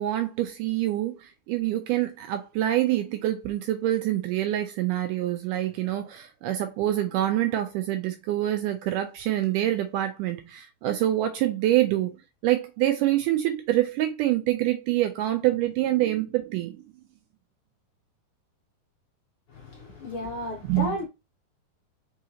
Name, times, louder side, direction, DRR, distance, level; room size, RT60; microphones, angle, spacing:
voice 1, 0.0-12.2 12.4-16.8 20.6-20.9, right 14 dB, 90° right, 1.8 m, -26 dB
voice 2, 19.5-21.1, left 2 dB, 60° left, 1.4 m, -33 dB
5.0 x 3.7 x 2.8 m
omnidirectional pair, 4.3 m